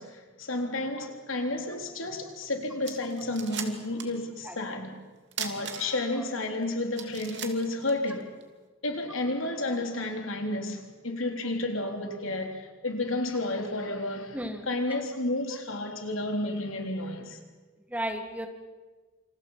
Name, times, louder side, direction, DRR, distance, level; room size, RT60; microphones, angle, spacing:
voice 1, 0.0-5.0 5.4-8.3 8.8-14.4 14.7-17.4, left 2 dB, 85° left, 3.7 m, -31 dB
sound 1, 2.4-2.5 2.8-4.2 4.5-4.6 5.3-6.2 6.6-6.7 6.9-8.5, right 8 dB, 60° right, 2.7 m, -38 dB
voice 2, 14.3-14.8 17.9-18.5, right 1 dB, 10° right, 2.0 m, -34 dB
28.0 x 27.5 x 5.8 m
head